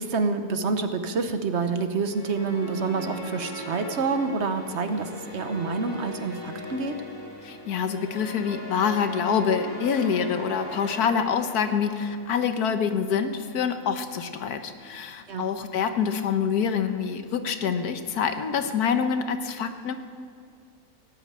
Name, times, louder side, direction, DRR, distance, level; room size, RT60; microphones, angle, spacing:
voice 1, 0.0-7.0 15.3-15.5, right 4 dB, 50° right, 8 dB, 1.1 m, -27 dB
sound 1, 2.0-12.4, equal, 50° left, 2.4 m, -40 dB
voice 2, 7.4-19.9, left 7 dB, 85° left, 8 dB, 1.5 m, -26 dB
17.5 x 8.8 x 8.8 m, 2.4 s
omnidirectional pair, 1.6 m